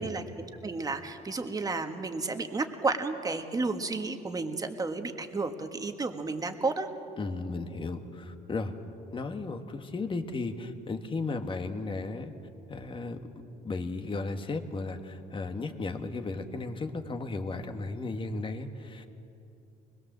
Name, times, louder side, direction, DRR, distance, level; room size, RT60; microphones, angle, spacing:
voice 1, 0.0-6.9, right 3 dB, 20° right, 6 dB, 1.7 m, -32 dB
voice 2, 7.2-8.7 9.1-12.3 12.7-13.2 13.6-19.1, left 3 dB, 30° left, 6 dB, 1.7 m, -35 dB
24.0 x 21.0 x 7.5 m, 2.7 s
cardioid pair, 110°, 17 cm